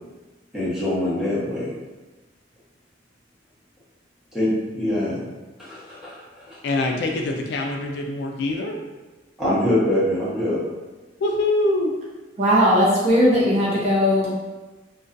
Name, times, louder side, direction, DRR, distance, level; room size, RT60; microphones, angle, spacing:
voice 1, 0.5-1.7 4.3-5.2 5.6-6.6 9.4-10.6, left 1 dB, 5° right, -11 dB, 0.9 m, -24 dB
voice 2, 6.6-8.8 11.2-11.9, left 2 dB, 65° left, 2 dB, 0.3 m, -24 dB
voice 3, 12.4-14.5, equal, 35° right, -7 dB, 0.7 m, -18 dB
2.5 x 2.2 x 2.5 m, 1.2 s
head